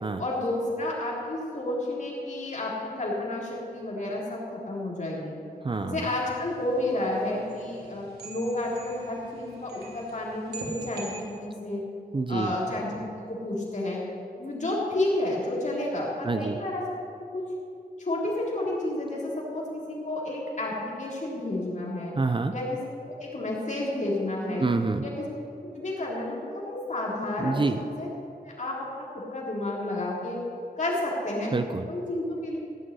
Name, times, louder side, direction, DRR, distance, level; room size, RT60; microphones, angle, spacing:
voice 1, 0.2-5.3 5.8-11.8 12.3-13.0 13.3-14.0 14.4-16.8 17.3-17.5 18.0-22.1 22.5-22.8 23.2-24.7 25.0-25.2 25.7-28.1 28.4-30.4 30.8-31.5 31.9-32.6, left 1 dB, 50° left, -4 dB, 3.7 m, -31 dB
voice 2, 5.6-6.1 12.1-12.6 16.2-16.6 22.2-22.5 24.6-25.0 27.4-27.8 31.5-31.9, right 3 dB, 30° right, 8 dB, 0.6 m, -27 dB
sound 1, 6.1-11.2, right 2 dB, 90° right, 2.5 m, -44 dB
16.0 x 6.4 x 9.4 m, 2.5 s
wide cardioid pair, 130°, 16 cm